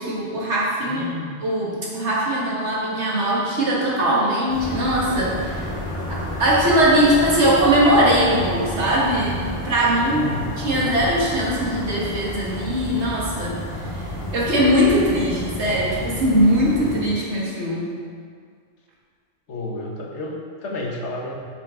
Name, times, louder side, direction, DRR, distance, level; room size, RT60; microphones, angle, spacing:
voice 1, 0.0-1.0 1.4-5.7 6.1-10.2 10.6-13.6 13.9-14.1 14.3-17.9, right 1 dB, 80° right, -5 dB, 1.9 m, -20 dB
voice 2, 0.8-1.4 10.1-10.9 19.5-21.4, left 2 dB, 85° left, -1 dB, 1.4 m, -31 dB
sound 1, 1.6-5.8, right 1 dB, 55° right, 2.0 m, -43 dB
sound 2, 4.5-17.0, left 1 dB, 30° left, 1.2 m, -31 dB
7.6 x 6.8 x 3.7 m, 2.1 s
omnidirectional pair, 1.2 m